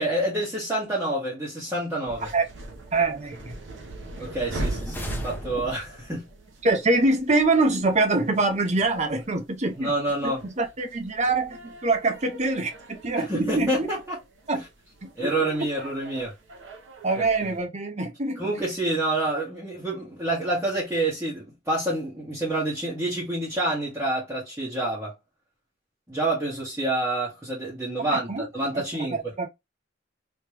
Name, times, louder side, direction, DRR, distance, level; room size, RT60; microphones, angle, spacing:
voice 1, 0.0-2.3 4.2-6.2 9.8-10.4 13.1-14.2 14.5-14.7 15.1-16.3 17.1-17.5 18.4-25.1 26.1-29.3, right 1 dB, 10° right, 1.4 m, -28 dB
sound 1, 2.1-17.6, right 2 dB, 65° right, 0.9 m, -40 dB
voice 2, 2.9-3.5 6.6-9.9 10.2-13.9 14.5-14.6 15.0-15.3 17.0-18.4 28.1-28.5 28.9-29.5, right 3 dB, 35° right, 0.8 m, -24 dB
sound 2, 4.3-6.1, left 1 dB, 10° left, 0.7 m, -39 dB
3.3 x 3.1 x 3.0 m
head